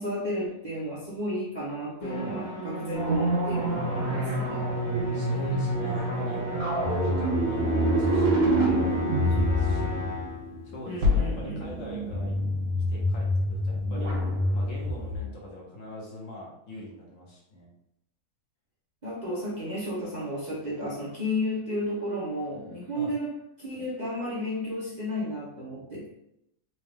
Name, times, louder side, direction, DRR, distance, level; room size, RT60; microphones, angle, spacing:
voice 1, 0.0-4.6 5.0-5.2 9.2-9.4 10.9-11.7 19.0-26.1, equal, 35° right, -7 dB, 0.8 m, -33 dB
Musical instrument, 2.0-10.5, equal, 40° left, 0.7 m, -36 dB
sound 1, 2.9-15.2, equal, 75° right, 1.8 m, -26 dB
voice 2, 5.1-6.4 6.9-10.3 10.6-12.4 12.9-14.1 14.5-17.7 22.9-23.2, left 1 dB, 60° left, -3 dB, 1.3 m, -43 dB
4.2 x 2.4 x 3.3 m, 0.80 s
omnidirectional pair, 1.6 m